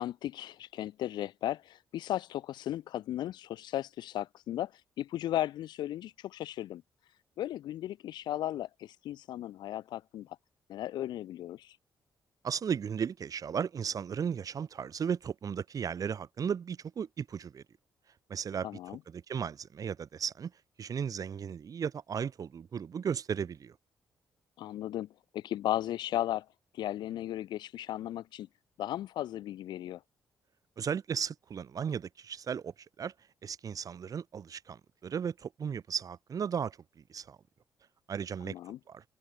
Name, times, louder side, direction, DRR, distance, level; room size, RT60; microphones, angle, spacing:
voice 1, 0.0-4.7 5.0-6.8 7.4-10.3 10.7-11.7 18.6-19.0 24.6-25.1 25.3-26.5 26.7-28.5 28.8-30.0 38.4-38.8, left 13 dB, 85° left, 5.2 m, -35 dB
voice 2, 12.4-17.6 18.3-20.5 20.8-23.8 30.8-33.1 33.4-37.4 38.1-38.5 38.9-39.0, right 7 dB, 55° right, 6.7 m, -35 dB
cardioid pair, 95°, 7 cm